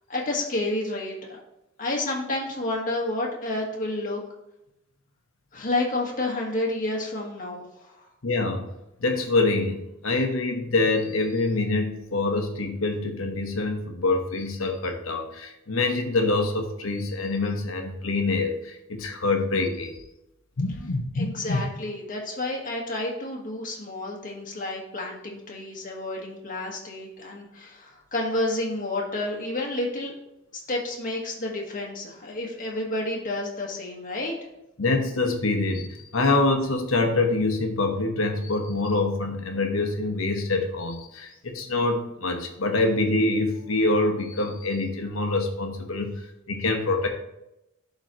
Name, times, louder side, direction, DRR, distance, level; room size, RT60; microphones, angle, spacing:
voice 1, 0.1-1.4 1.8-4.2 5.5-7.9 21.1-30.1 30.5-34.3, left 2 dB, 40° left, -2 dB, 1.5 m, -30 dB
voice 2, 8.2-8.6 9.0-20.0 20.6-21.6 34.8-47.1, left 2 dB, 80° left, 4 dB, 1.1 m, -25 dB
11.5 x 4.0 x 3.0 m, 0.87 s
head